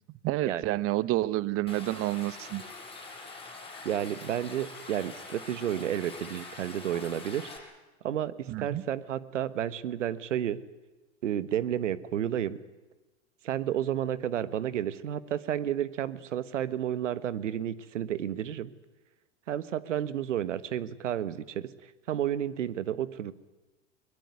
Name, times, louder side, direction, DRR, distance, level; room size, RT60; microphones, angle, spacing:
voice 1, 0.2-2.6 8.5-8.8, right 16 dB, 40° right, 19 dB, 0.8 m, -29 dB
Stream, 1.7-7.6, left 3 dB, 15° left, 7.5 m, -44 dB
voice 2, 3.8-7.5 8.0-10.6 11.2-12.6 13.4-18.7 19.5-21.7 22.1-23.3, right 10 dB, 80° right, 16 dB, 1.4 m, -31 dB
22.0 x 21.0 x 9.5 m, 1.2 s
hypercardioid pair, 95°, 36 cm